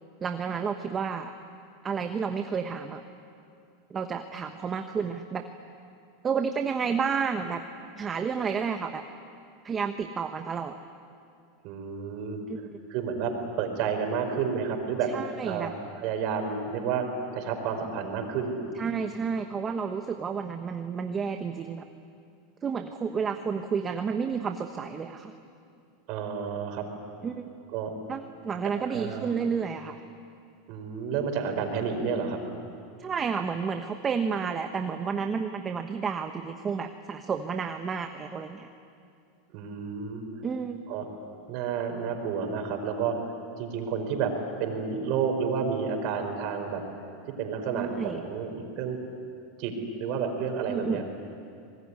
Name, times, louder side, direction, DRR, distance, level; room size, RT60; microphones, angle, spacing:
voice 1, 0.2-1.3 1.8-3.0 3.9-5.5 6.2-7.6 8.0-9.0 9.6-10.8 12.5-12.6 15.1-15.7 18.8-21.8 22.6-25.3 27.2-27.4 28.1-30.0 33.0-38.7 40.4-40.8 47.7-48.2 50.7-51.0, right 6 dB, 25° right, 6 dB, 1.2 m, -31 dB
voice 2, 11.6-12.4 12.9-15.1 15.4-15.7 16.0-17.1 17.3-18.6 26.1-26.8 27.7-27.9 28.9-29.3 30.7-32.4 39.5-40.2 40.9-41.0 41.5-43.2 43.6-44.3 44.6-46.8 47.2-49.0 49.6-49.7 50.0-51.0, right 6 dB, 55° right, 5 dB, 4.9 m, -30 dB
25.5 x 20.5 x 9.8 m, 2.4 s
supercardioid pair, 125°, 0 cm